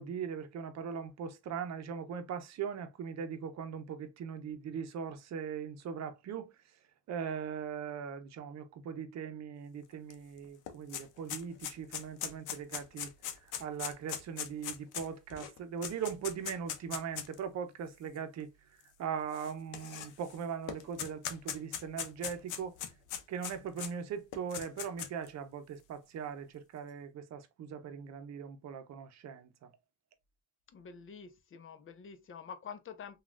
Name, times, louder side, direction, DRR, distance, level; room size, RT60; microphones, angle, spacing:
voice 1, 0.0-6.5 7.1-13.1 13.4-18.5 19.0-22.8 23.3-29.7, right 7 dB, 65° right, 0.7 m, -40 dB
sound 1, 10.1-10.2 10.4-17.4 18.2-18.3 19.3-20.4 20.7-23.9 24.3-25.3, left 9 dB, 85° left, 0.6 m, -40 dB
voice 2, 30.7-33.2, left 6 dB, 45° left, 0.6 m, -47 dB
3.2 x 2.4 x 2.4 m
cardioid pair, 90°, 30 cm